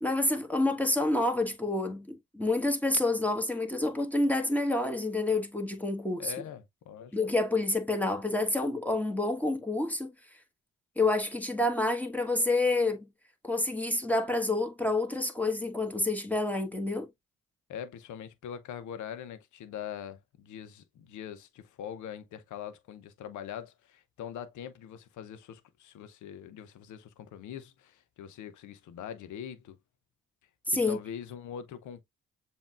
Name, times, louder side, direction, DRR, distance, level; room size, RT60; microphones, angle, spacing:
voice 1, 0.0-6.3 7.1-10.1 11.0-13.1 13.4-17.1 30.7-31.0, left 2 dB, 5° left, 1.3 m, -28 dB
voice 2, 6.2-7.2 17.7-29.8 30.7-32.0, left 9 dB, 70° left, 0.8 m, -42 dB
7.1 x 2.8 x 2.4 m
hypercardioid pair, 45°, 31 cm